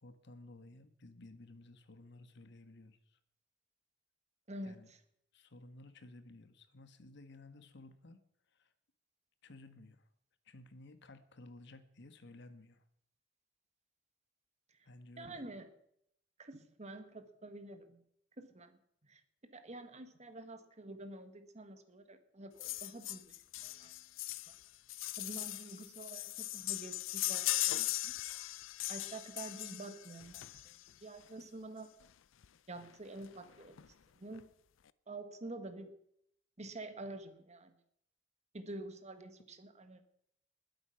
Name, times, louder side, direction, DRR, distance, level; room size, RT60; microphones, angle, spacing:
voice 1, 0.0-3.2 4.6-4.9 5.3-8.2 8.5-8.7 9.4-10.1 10.4-12.8 14.8-15.4, left 2 dB, 65° left, 10 dB, 1.3 m, -55 dB
voice 2, 4.5-5.0 15.2-15.7 16.4-18.0 18.4-23.4 23.6-23.9 24.5-24.6 25.2-28.2 28.9-31.9 32.7-34.5 35.1-36.0 36.6-37.7 38.5-40.0, right 2 dB, 35° right, 9 dB, 1.4 m, -48 dB
sound 1, 22.6-30.9 32.0-32.1 32.4-32.5 32.8-32.9 33.3-33.9 34.3-34.4, left 16 dB, 80° left, 0.5 m, -39 dB
20.5 x 8.2 x 5.8 m, 0.72 s
head